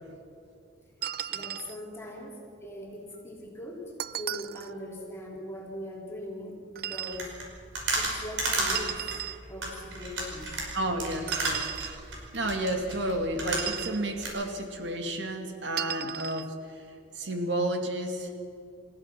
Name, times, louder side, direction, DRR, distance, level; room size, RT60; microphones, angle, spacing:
sound 1, 1.0-1.8 4.0-4.7 6.8-7.2 8.7-9.4 11.3-12.0 13.4-14.0 15.8-16.5, right 11 dB, 55° right, 0.4 m, -35 dB
voice 1, 1.3-7.4 7.9-9.1 9.5-10.6, left 1 dB, 15° left, -3 dB, 3.5 m, -41 dB
sound 2, 7.1-13.9 14.2-14.3, right 2 dB, 85° right, 5.4 m, -32 dB
voice 2, 10.7-11.7 12.3-16.5 17.2-18.3, right 1 dB, 70° right, 4 dB, 2.4 m, -31 dB
28.5 x 15.0 x 6.0 m, 2.6 s
head